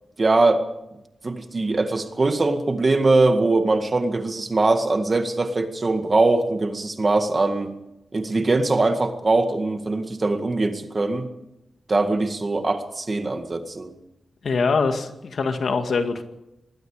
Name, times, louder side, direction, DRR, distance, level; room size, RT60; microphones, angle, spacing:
voice 1, 0.2-0.6 1.2-7.7 8.1-11.3 11.9-13.9, right 2 dB, 30° right, 6 dB, 2.0 m, -21 dB
voice 2, 14.4-16.2, left 4 dB, 60° left, 6 dB, 2.1 m, -23 dB
25.0 x 20.5 x 5.0 m, 0.90 s
wide cardioid pair, 170°, 0 cm